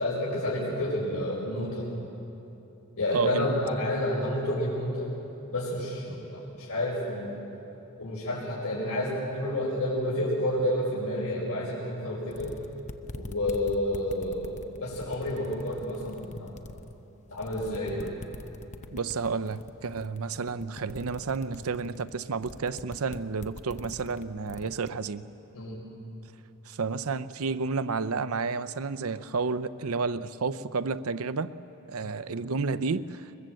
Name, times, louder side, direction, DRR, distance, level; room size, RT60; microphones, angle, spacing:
voice 1, 0.0-1.9 3.0-5.1 5.5-7.4 8.0-12.5 13.1-16.6 17.3-18.1 25.5-25.8, left 1 dB, 85° left, -6 dB, 5.3 m, -30 dB
voice 2, 3.1-3.6 18.9-25.2 26.7-31.5 31.9-33.3, right 4 dB, 75° right, 14 dB, 0.6 m, -31 dB
sound 1, 12.0-12.1 12.3-16.9 17.3-24.9, left 2 dB, 35° left, 0.9 m, -43 dB
22.0 x 22.0 x 7.8 m, 2.9 s
head